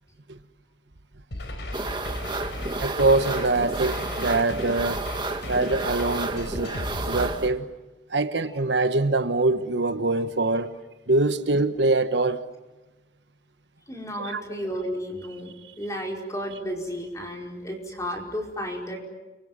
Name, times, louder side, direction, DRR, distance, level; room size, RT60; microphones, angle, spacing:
sound 1, 1.3-7.3, left 1 dB, 80° left, 3.8 m, -35 dB
sound 2, 1.7-7.5, right 2 dB, 25° right, 1.9 m, -32 dB
voice 1, 2.8-5.0 5.5-6.8 7.1-7.7 8.1-10.7 11.1-12.4 14.2-14.4, right 2 dB, 80° right, 1.2 m, -24 dB
voice 2, 13.9-19.0, equal, 20° left, 5.1 m, -33 dB
30.0 x 23.5 x 7.5 m
head